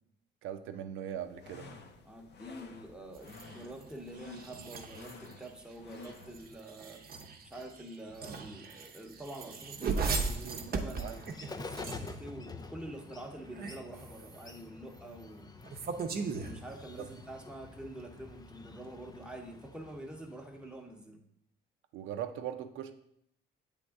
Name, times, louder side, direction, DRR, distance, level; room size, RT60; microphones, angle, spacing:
voice 1, 0.4-1.7 10.4-10.6 11.0-11.2 16.9-17.1 21.9-22.9, right 10 dB, 85° right, 9 dB, 0.5 m, -40 dB
sound 1, 1.2-6.6, left 4 dB, 60° left, 0.7 m, -51 dB
voice 2, 2.0-7.0 7.4-15.6 16.3-21.2, right 1 dB, 5° right, 2 dB, 0.8 m, -46 dB
sound 2, 3.1-12.3 13.4-14.6 15.6-17.2, right 4 dB, 50° right, 0.7 m, -39 dB
Bird, 9.4-20.9, left 3 dB, 20° left, 0.3 m, -49 dB
7.8 x 3.5 x 3.5 m, 0.71 s
cardioid pair, 90°, 20 cm